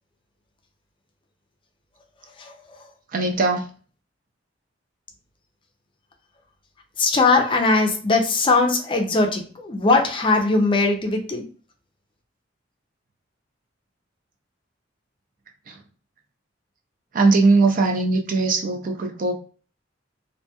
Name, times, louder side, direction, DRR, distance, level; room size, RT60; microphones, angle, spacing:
voice 1, 2.4-2.8 7.0-11.4, left 3 dB, 25° left, 3 dB, 0.4 m, -20 dB
voice 2, 3.1-3.6 15.7-15.8 17.1-19.4, right 3 dB, 45° right, 3 dB, 0.5 m, -20 dB
2.7 x 2.6 x 2.2 m, 0.40 s
head